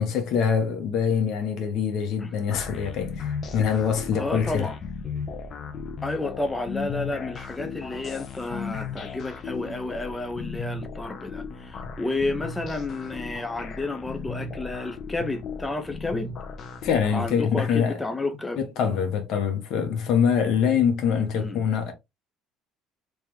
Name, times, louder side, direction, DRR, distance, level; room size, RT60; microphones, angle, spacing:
voice 1, 0.0-4.7 16.8-18.0 18.6-21.9, left 7 dB, 65° left, 1.1 m, -24 dB
sound 1, 2.5-17.3, left 5 dB, 45° left, 0.7 m, -36 dB
voice 2, 4.2-4.8 6.0-16.3 17.1-18.6 21.3-21.6, left 2 dB, 10° left, 0.5 m, -31 dB
3.3 x 3.2 x 3.0 m
cardioid pair, 125°, 0 cm